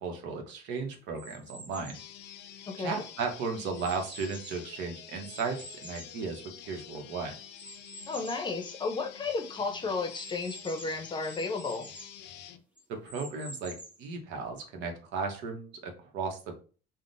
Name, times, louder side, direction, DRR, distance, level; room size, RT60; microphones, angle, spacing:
voice 1, 0.0-2.0 2.8-7.3 12.9-16.5, right 4 dB, 75° right, 4 dB, 0.8 m, -35 dB
sound 1, 1.1-2.1 2.7-4.7 5.2-6.9 7.6-8.5 9.0-9.1 9.3-9.4 10.1-12.2 12.8-14.1, right 1 dB, 5° right, 1.0 m, -48 dB
sound 2, 1.9-12.6, left 10 dB, 70° left, 0.4 m, -48 dB
voice 2, 2.7-3.0 8.1-11.9, left 4 dB, 25° left, 5 dB, 0.6 m, -33 dB
3.5 x 2.1 x 2.5 m, 0.37 s
cardioid pair, 100°, 19 cm